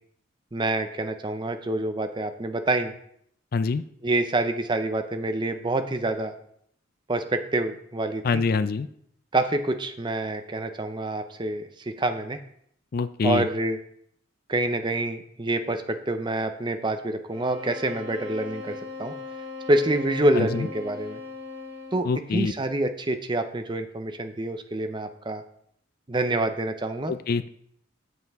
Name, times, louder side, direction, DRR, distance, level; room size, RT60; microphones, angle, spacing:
voice 1, 0.5-2.9 4.0-6.3 7.1-8.4 9.3-12.4 13.2-13.8 14.5-19.1 19.7-21.2 21.9-22.1 22.3-25.4 26.1-27.1, right 2 dB, 25° right, 8 dB, 0.6 m, -27 dB
voice 2, 3.5-3.8 8.2-8.9 12.9-13.4 20.4-20.7 22.0-22.5 27.1-27.5, left 4 dB, 50° left, 13 dB, 0.4 m, -25 dB
sound 1, 17.3-22.2, left 4 dB, 85° right, 3.3 m, -39 dB
7.9 x 7.5 x 3.5 m, 0.69 s
head